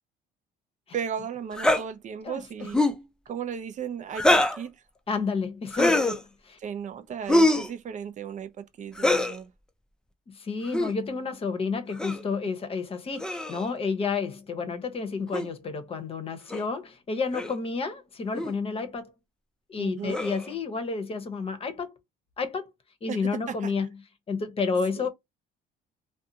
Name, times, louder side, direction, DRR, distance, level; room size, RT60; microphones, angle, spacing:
voice 1, 0.9-2.8 3.3-4.8 6.6-9.5 19.8-20.2 23.1-23.2 23.5-23.7 25.0-25.1, right 7 dB, 45° right, 0.5 m, -35 dB
sound 1, 1.6-1.8 2.7-3.0 4.1-4.6 5.7-6.2 7.3-7.7 9.0-9.4 10.6-10.9 12.0-12.2 13.2-13.7 15.3-15.5 16.5-16.6 17.3-17.6 18.3-18.5 20.1-20.5, left 1 dB, 5° left, 0.4 m, -23 dB
voice 2, 5.1-6.6 10.3-19.1 19.7-22.0 22.4-22.7 23.0-23.9 24.3-25.1, left 4 dB, 35° left, 0.8 m, -30 dB
2.5 x 2.3 x 2.7 m
cardioid pair, 110°, 17 cm